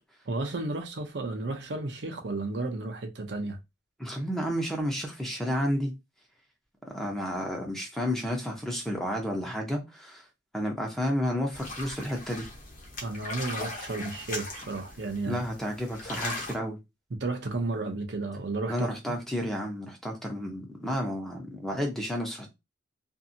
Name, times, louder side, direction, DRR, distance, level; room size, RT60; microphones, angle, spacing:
voice 1, 0.3-3.6 13.0-15.4 17.1-19.1, right 2 dB, 70° right, 0.6 m, -33 dB
voice 2, 4.0-5.9 6.9-10.2 10.5-12.5 15.3-16.8 18.7-22.5, equal, ahead, 0.7 m, -31 dB
sound 1, 11.5-16.6, left 2 dB, 45° left, 0.9 m, -39 dB
2.6 x 2.6 x 2.6 m
head